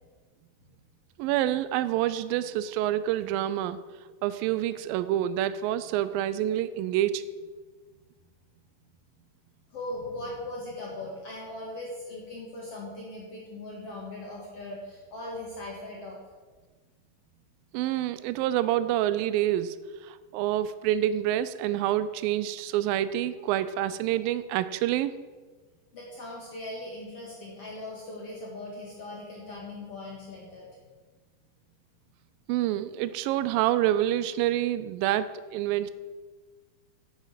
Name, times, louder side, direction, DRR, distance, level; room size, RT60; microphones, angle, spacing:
voice 1, 1.2-3.8 4.2-7.2 17.7-19.8 20.0-25.1 32.5-35.9, right 12 dB, 85° right, 14 dB, 2.0 m, -27 dB
voice 2, 9.7-16.2 25.9-30.8, left 2 dB, 50° left, -3 dB, 2.0 m, -39 dB
8.3 x 8.0 x 7.4 m, 1.4 s
omnidirectional pair, 4.6 m